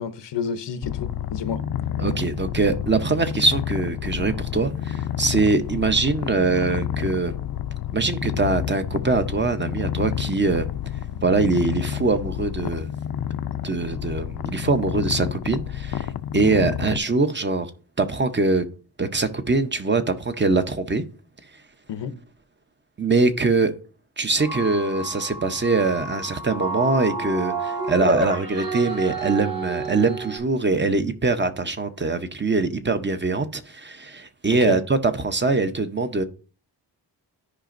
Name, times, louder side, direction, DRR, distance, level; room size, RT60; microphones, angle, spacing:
voice 1, 0.0-1.6 16.4-16.6 21.9-22.1 34.5-34.8, left 7 dB, 85° left, 0.8 m, -30 dB
Purr, 0.8-17.0, left 10 dB, 60° left, 0.5 m, -30 dB
voice 2, 2.0-7.3 7.9-10.7 11.2-12.9 13.6-17.7 18.0-18.6 19.0-21.0 23.0-23.7 24.2-36.2, right 3 dB, 25° right, 0.7 m, -23 dB
sound 1, 24.4-30.4, right 3 dB, 55° right, 2.4 m, -29 dB
13.5 x 5.0 x 2.5 m
wide cardioid pair, 100°, 41 cm